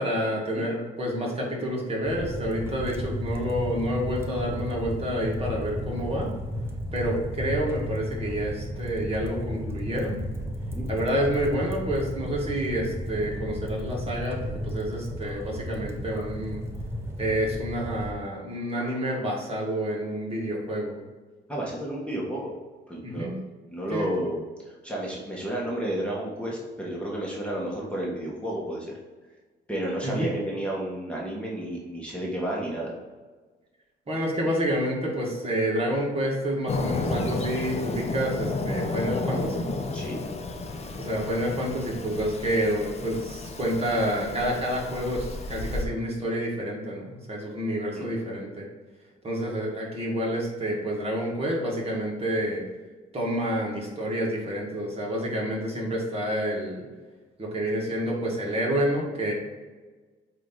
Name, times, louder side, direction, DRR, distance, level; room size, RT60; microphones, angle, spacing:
voice 1, 0.0-6.3 6.9-10.2 10.9-16.6 17.2-21.0 23.0-23.4 23.9-24.1 30.0-30.3 34.1-39.7 41.0-48.7 49.2-52.6 53.1-56.9 57.4-59.3, equal, 30° right, -3 dB, 1.9 m, -28 dB
sound 1, 2.1-18.1, equal, 10° right, 0.9 m, -34 dB
voice 2, 21.5-22.5 22.9-23.3 23.7-28.9 29.7-32.9 39.9-40.2 47.9-48.1, right 1 dB, 5° left, -4 dB, 1.5 m, -31 dB
Fireworks, 36.7-45.8, left 3 dB, 30° left, 0.8 m, -32 dB
8.1 x 2.9 x 4.0 m, 1.3 s
cardioid pair, 90°, 20 cm